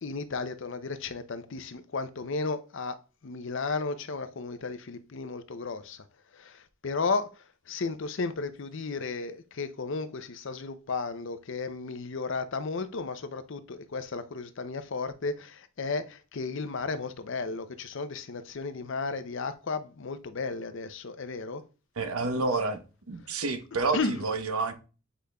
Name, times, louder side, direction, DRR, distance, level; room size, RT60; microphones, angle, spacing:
voice 1, 0.0-3.0 3.2-6.0 6.3-7.3 7.7-21.6 23.9-24.2, left 4 dB, 60° left, 0.6 m, -34 dB
voice 2, 22.0-22.8 23.1-24.7, right 3 dB, 80° right, 0.9 m, -29 dB
8.3 x 5.0 x 2.3 m
head